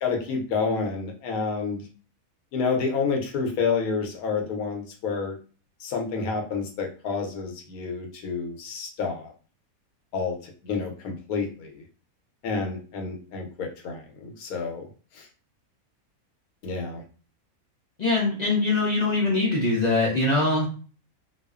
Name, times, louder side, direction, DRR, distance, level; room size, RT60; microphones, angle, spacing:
voice 1, 0.0-1.8 2.5-5.4 5.8-9.3 10.1-10.4 10.6-11.8 12.4-14.8 16.6-17.0, left 5 dB, 90° left, 2 dB, 1.2 m, -29 dB
voice 2, 18.0-20.7, left 2 dB, 50° left, -3 dB, 0.5 m, -22 dB
2.8 x 2.0 x 2.3 m, 0.38 s
omnidirectional pair, 1.5 m